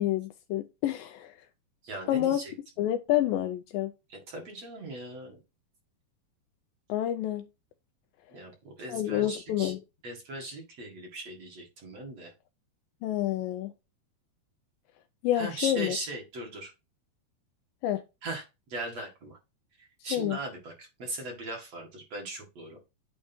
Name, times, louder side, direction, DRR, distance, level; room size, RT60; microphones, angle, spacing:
voice 1, 0.0-1.3 2.1-2.4 2.8-3.9 6.9-7.5 8.9-9.8 13.0-13.7 15.2-16.0 17.8-18.0 20.1-20.4, left 12 dB, 85° left, 2.1 m, -28 dB
voice 2, 1.8-2.5 4.3-5.4 8.3-9.7 10.0-12.3 15.3-16.7 18.2-18.4 18.7-19.4 19.8-22.8, right 2 dB, 50° right, 2.5 m, -39 dB
9.2 x 3.2 x 4.4 m
omnidirectional pair, 4.4 m